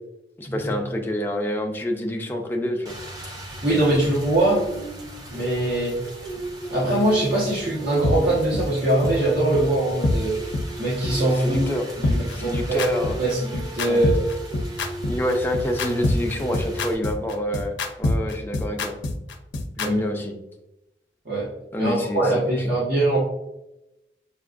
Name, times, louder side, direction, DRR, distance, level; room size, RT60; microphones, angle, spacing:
voice 1, 0.4-3.0 11.4-11.8 12.3-13.2 13.9-14.0 15.1-18.9 19.8-20.3 21.7-22.8, equal, 10° left, 2 dB, 0.5 m, -27 dB
Rain, 2.8-16.9, right 1 dB, 20° right, 0.8 m, -36 dB
voice 2, 3.6-4.7 5.3-6.0 6.7-10.4 10.8-11.6 12.0-12.9 13.2-14.2 19.8-20.0 21.2-21.5 21.8-23.2, right 1 dB, 65° right, -9 dB, 1.3 m, -22 dB
sound 1, 8.0-8.1 8.5-8.6 9.0-9.1 9.5-9.6 10.0-10.1 10.5-10.6 11.0-11.1 11.5-11.6 12.0-19.9, left 2 dB, 90° left, 0.6 m, -24 dB
6.8 x 2.5 x 2.4 m, 0.90 s
head